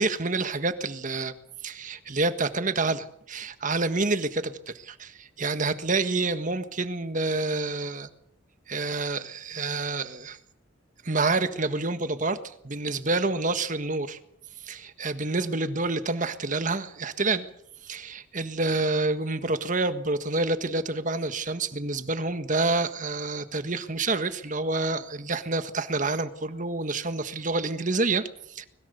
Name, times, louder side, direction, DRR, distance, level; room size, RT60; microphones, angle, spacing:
voice 1, 0.0-1.3 1.6-3.0 3.3-8.1 8.7-10.4 11.0-14.2 14.6-17.5 17.8-28.7, right 3 dB, 40° right, 10 dB, 1.6 m, -28 dB
25.0 x 21.5 x 6.8 m, 0.73 s
head